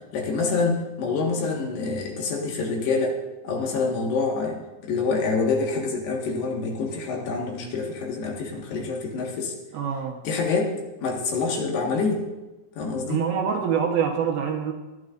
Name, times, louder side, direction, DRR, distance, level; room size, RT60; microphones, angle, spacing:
voice 1, 0.1-3.2 3.4-9.5 10.2-12.2 12.8-13.2, left 4 dB, 70° left, -1 dB, 3.6 m, -26 dB
voice 2, 9.7-10.2 13.1-14.7, right 7 dB, 70° right, 2 dB, 2.6 m, -25 dB
21.0 x 12.5 x 2.6 m, 1.1 s
omnidirectional pair, 5.0 m